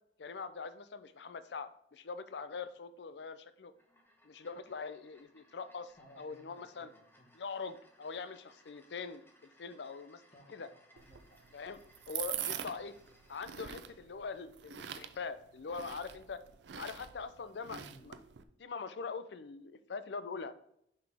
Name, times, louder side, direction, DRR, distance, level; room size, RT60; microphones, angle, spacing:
voice 1, 0.2-3.7 4.2-6.9 7.3-10.2 10.5-10.7 11.5-11.8 12.1-12.9 13.3-16.4 16.8-18.1 18.6-20.5, left 5 dB, 70° left, 12 dB, 0.5 m, -43 dB
sound 1, 3.7-13.8, left 1 dB, 10° left, 1.0 m, -66 dB
voice 2, 6.0-7.3 10.3-11.4 17.7-18.1, right 1 dB, 35° left, 1 dB, 1.5 m, -60 dB
sound 2, 11.0-18.4, right 10 dB, 75° right, 0.5 m, -44 dB
6.0 x 5.3 x 3.4 m, 0.73 s
head